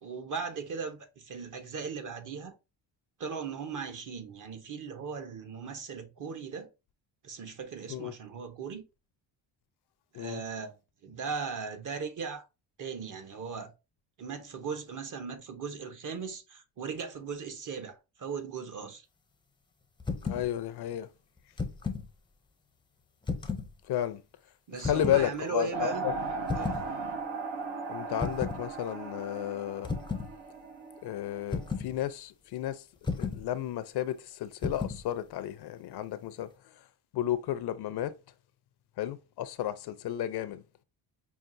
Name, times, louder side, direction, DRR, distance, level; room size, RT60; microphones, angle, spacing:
voice 1, 0.0-2.5 3.2-6.7 7.2-8.9 10.1-10.8 11.0-12.4 12.8-13.7 14.2-19.1 24.7-26.1 26.5-26.9, right 5 dB, 40° right, 0.8 m, -38 dB
sound 1, 20.0-20.5 21.4-22.1 23.2-23.7 24.8-25.2 26.5-26.9 28.2-28.6 29.8-30.3 31.5-31.9 33.0-33.4 34.6-35.0, left 4 dB, 10° left, 0.5 m, -33 dB
voice 2, 20.2-21.1 23.9-24.2 24.7-26.2 27.9-29.9 31.0-32.8 33.2-36.5 37.1-38.1 39.0-40.6, left 12 dB, 60° left, 0.5 m, -32 dB
sound 2, 25.7-31.8, right 3 dB, 80° right, 0.9 m, -37 dB
5.6 x 2.4 x 2.6 m
cardioid pair, 100°, 46 cm